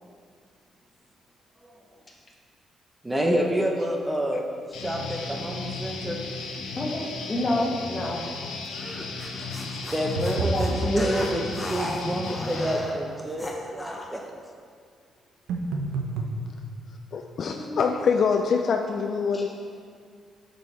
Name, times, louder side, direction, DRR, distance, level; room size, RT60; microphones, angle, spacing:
voice 1, 3.0-6.2 9.8-14.3, equal, 15° right, 2 dB, 0.6 m, -28 dB
Guitar, 4.7-12.8, left 3 dB, 90° left, 0.8 m, -35 dB
voice 2, 6.7-8.2 9.9-10.1 10.4-11.1 17.5-17.8 19.3-19.5, left 1 dB, 30° left, -2 dB, 1.3 m, -29 dB
sound 1, 8.6-14.2, left 1 dB, 10° left, 0.8 m, -36 dB
sound 2, 10.2-11.1 15.5-16.4, right 3 dB, 85° right, 0.7 m, -28 dB
voice 3, 17.1-19.5, left 5 dB, 55° left, 4 dB, 0.4 m, -24 dB
7.5 x 5.3 x 3.1 m, 2.1 s
cardioid pair, 90°, 0 cm